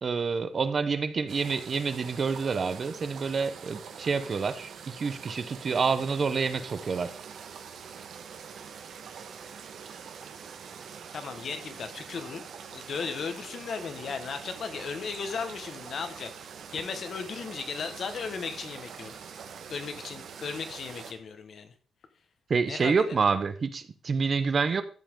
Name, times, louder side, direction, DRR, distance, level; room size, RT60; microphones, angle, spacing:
voice 1, 0.0-7.1 22.5-24.8, right 5 dB, 35° right, 0.8 m, -28 dB
sound 1, 1.3-21.1, right 7 dB, 70° right, 1.4 m, -44 dB
voice 2, 11.1-16.3 16.7-19.1 19.7-21.7 22.7-23.2, left 5 dB, 55° left, 1.4 m, -36 dB
13.0 x 7.8 x 3.7 m
wide cardioid pair, 165°, 0 cm